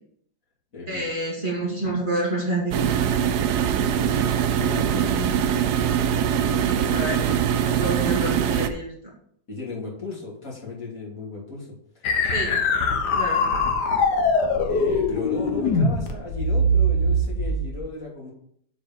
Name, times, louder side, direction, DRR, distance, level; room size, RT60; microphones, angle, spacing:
voice 1, 0.9-3.2 6.6-7.3 7.6-8.9 12.3-12.6 13.1-13.5, right 2 dB, 25° right, -3 dB, 2.2 m, -29 dB
sound 1, 2.7-8.7, right 8 dB, 70° right, 1.1 m, -22 dB
voice 2, 3.9-6.0 6.4-6.8 7.9-8.0 9.5-11.7 12.0-12.1 12.7-12.9 14.7-18.3, left 3 dB, 45° left, -5 dB, 3.3 m, -36 dB
sound 2, 12.0-17.8, left 1 dB, 65° left, 1.6 m, -22 dB
8.0 x 4.8 x 7.0 m, 0.66 s
omnidirectional pair, 2.0 m